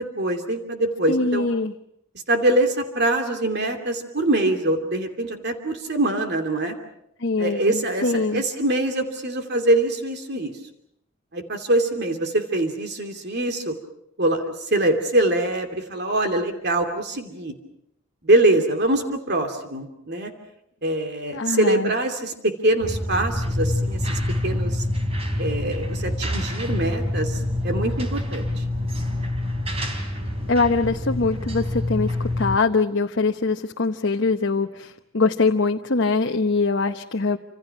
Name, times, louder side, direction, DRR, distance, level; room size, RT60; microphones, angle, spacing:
voice 1, 0.0-1.5 2.3-6.7 7.4-10.5 11.3-13.7 14.2-17.6 18.2-20.3 20.8-24.8 25.4-28.6, right 1 dB, 50° right, 5 dB, 2.7 m, -24 dB
voice 2, 1.1-1.7 7.2-8.4 21.3-21.9 29.8-29.9 30.5-37.4, left 3 dB, 55° left, 4 dB, 1.0 m, -23 dB
sound 1, 22.8-32.6, left 1 dB, 30° right, 3.6 m, -26 dB
28.5 x 27.0 x 5.9 m, 0.76 s
head